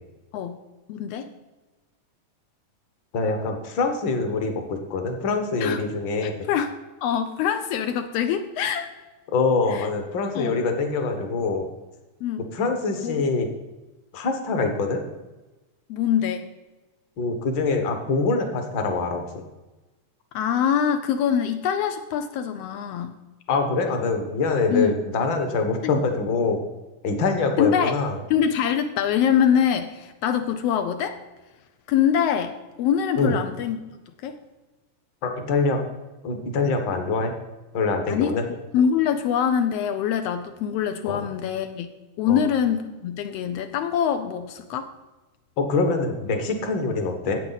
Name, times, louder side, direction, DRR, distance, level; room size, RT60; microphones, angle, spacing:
voice 1, 0.9-1.3 5.6-5.8 6.2-6.7 7.0-8.9 9.7-9.9 10.3-10.6 12.2-12.5 13.0-13.2 15.9-16.5 20.3-23.1 24.7-25.0 25.8-26.0 27.6-28.0 28.3-31.2 31.9-33.8 34.2-34.4 38.1-38.3 38.7-41.9 42.2-44.9, left 8 dB, 90° left, 7 dB, 1.3 m, -24 dB
voice 2, 3.1-6.5 9.3-11.7 12.5-13.5 14.1-15.0 17.2-19.4 23.5-26.6 27.0-28.2 33.2-33.3 35.2-35.8 36.2-37.3 37.7-38.4 41.0-41.3 42.3-42.4 45.6-47.4, left 3 dB, 50° left, 5 dB, 1.5 m, -24 dB
12.5 x 8.4 x 4.0 m, 1.1 s
omnidirectional pair, 3.5 m